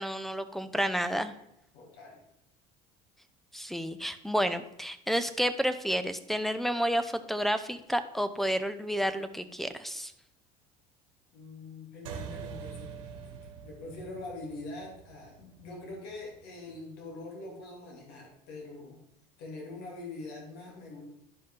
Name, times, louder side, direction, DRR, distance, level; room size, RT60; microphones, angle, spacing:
voice 1, 0.0-1.3 3.5-10.1, equal, ahead, 12 dB, 0.6 m, -30 dB
voice 2, 1.7-2.2 11.3-19.0 19.4-21.0, left 2 dB, 70° left, -1 dB, 2.8 m, -44 dB
sound 1, 12.1-16.9, right 6 dB, 90° right, 1.2 m, -45 dB
11.0 x 5.3 x 3.8 m, 0.78 s
supercardioid pair, 95°, 17 cm